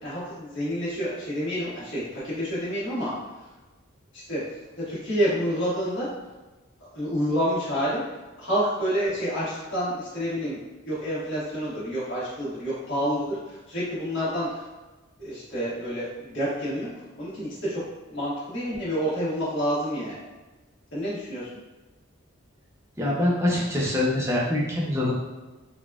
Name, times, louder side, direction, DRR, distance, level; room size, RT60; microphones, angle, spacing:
voice 1, 0.0-3.1 4.1-4.4 4.8-6.1 6.9-8.0 8.4-10.6 10.8-13.4 13.7-14.5 15.2-16.9 17.2-17.8 18.1-20.2 20.9-21.5, equal, 65° left, -10 dB, 1.4 m, -28 dB
voice 2, 23.0-25.1, left 1 dB, 15° right, -5 dB, 0.6 m, -24 dB
4.0 x 2.3 x 2.3 m, 1.2 s
head